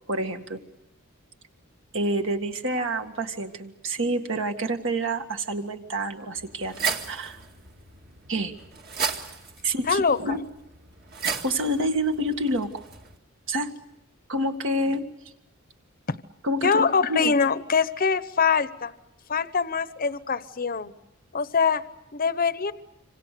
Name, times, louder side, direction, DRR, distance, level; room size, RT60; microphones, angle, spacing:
voice 1, 0.1-0.6 1.9-7.4 8.3-8.5 9.6-10.4 11.4-12.8 13.5-13.7 14.3-15.1 16.4-17.3, right 1 dB, 65° right, 6 dB, 1.9 m, -28 dB
sound 1, 6.4-13.2, right 6 dB, 45° right, 2.0 m, -35 dB
voice 2, 9.9-10.4 16.6-18.9 19.3-20.9 21.3-21.8 22.1-22.7, left 5 dB, 45° left, 13 dB, 0.9 m, -23 dB
26.5 x 26.0 x 6.8 m, 0.91 s
head